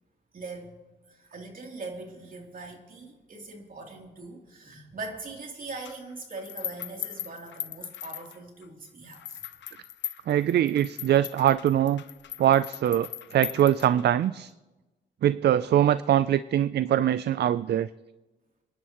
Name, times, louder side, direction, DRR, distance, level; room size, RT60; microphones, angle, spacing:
voice 1, 0.3-0.8 1.1-9.8, right 3 dB, 50° right, 1 dB, 3.2 m, -41 dB
sound 1, 5.8-8.7 9.1-14.3, left 10 dB, 80° left, 0.6 m, -39 dB
voice 2, 10.3-12.0 12.4-14.5 15.2-17.9, right 11 dB, 65° right, 16 dB, 0.4 m, -23 dB
26.5 x 11.0 x 3.0 m, 1.1 s
cardioid pair, 75°, 19 cm